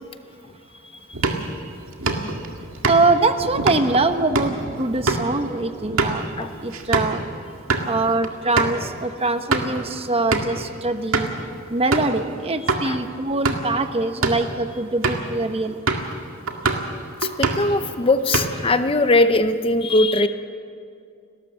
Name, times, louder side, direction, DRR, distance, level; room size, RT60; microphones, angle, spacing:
sound 1, 1.1-7.2 7.5-7.9 8.2-8.3 8.6-8.8 9.3-9.8 10.3-10.6 11.1-11.4 11.9-12.2 12.7-12.8 13.3-13.7 14.1-14.5 15.0-15.3 15.9-16.2 16.5-16.9 17.2-17.7 18.1-18.7, right 3 dB, 85° right, 1.9 m, -24 dB
voice 1, 2.8-7.2 7.8-11.3 11.7-15.8, right 2 dB, 30° right, 8 dB, 1.0 m, -23 dB
voice 2, 17.4-20.3, left 2 dB, 25° left, 10 dB, 0.7 m, -19 dB
30.0 x 13.0 x 7.4 m, 2.4 s
head